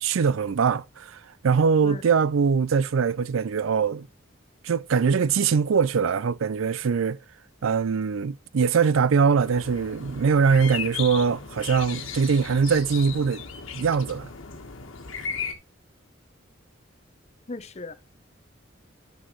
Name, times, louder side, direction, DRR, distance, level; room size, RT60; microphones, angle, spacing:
voice 1, 0.0-4.1 4.6-7.2 7.6-13.4 13.7-14.3, right 5 dB, 85° right, 0.4 m, -22 dB
sound 1, 9.4-15.5, left 6 dB, 85° left, 1.4 m, -36 dB
voice 2, 17.5-17.9, left 3 dB, 35° left, 0.6 m, -36 dB
11.5 x 6.2 x 3.1 m
head